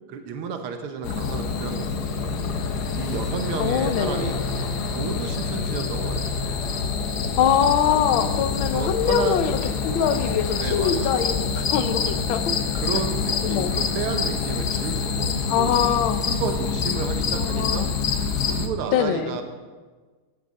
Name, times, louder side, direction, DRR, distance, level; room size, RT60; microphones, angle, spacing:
voice 1, 0.1-2.3 2.9-4.4 4.9-6.4 8.7-9.4 10.6-11.3 12.7-15.3 15.6-15.8 16.3-17.9 18.4-19.4, right 6 dB, 80° right, 6 dB, 1.9 m, -32 dB
sound 1, 1.0-18.7, left 5 dB, 55° left, 1.3 m, -26 dB
voice 2, 3.6-4.3 7.4-12.5 13.4-13.7 15.5-16.3 17.4-17.9 18.9-19.4, left 8 dB, 75° left, 9 dB, 1.5 m, -23 dB
14.5 x 11.0 x 4.1 m, 1.4 s
omnidirectional pair, 2.4 m